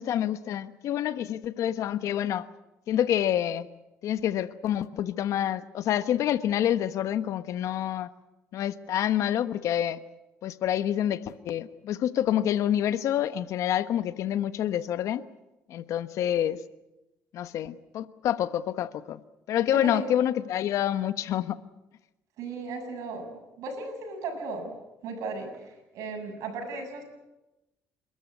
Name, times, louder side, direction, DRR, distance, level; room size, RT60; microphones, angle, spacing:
voice 1, 0.0-2.5 2.9-3.7 4.0-8.1 8.5-10.0 10.4-15.2 15.7-16.6 17.3-19.2 19.5-21.6, left 11 dB, 70° left, 13 dB, 1.1 m, -27 dB
voice 2, 19.7-20.1 22.4-24.8 25.0-27.0, right 3 dB, 75° right, 5 dB, 7.3 m, -36 dB
29.0 x 13.5 x 9.6 m, 1.0 s
cardioid pair, 100°, 6 cm